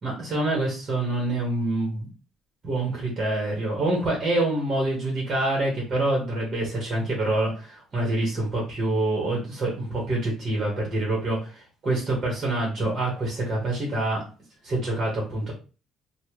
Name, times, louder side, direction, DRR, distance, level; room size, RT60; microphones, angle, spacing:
voice 1, 0.0-2.1 2.6-14.2 14.6-15.5, right 2 dB, 35° right, -3 dB, 1.5 m, -26 dB
3.3 x 2.5 x 3.0 m, 0.34 s
cardioid pair, 120°, 0 cm